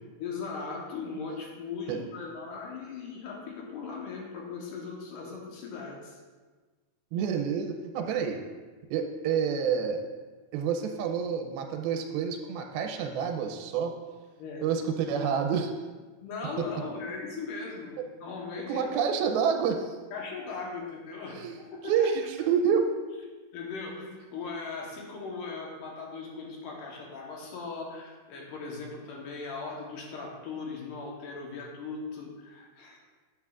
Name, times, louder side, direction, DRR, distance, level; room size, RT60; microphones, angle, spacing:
voice 1, 0.2-6.2 14.4-14.7 16.2-18.8 20.1-22.1 23.5-33.0, left 4 dB, 70° left, -1 dB, 2.4 m, -39 dB
voice 2, 7.1-8.4 8.9-10.0 10.5-13.9 14.6-15.7 18.0-18.1 18.7-20.0 21.3-21.6 21.8-22.9, right 7 dB, 90° right, 4 dB, 2.5 m, -28 dB
8.2 x 7.3 x 2.4 m, 1.4 s
omnidirectional pair, 4.4 m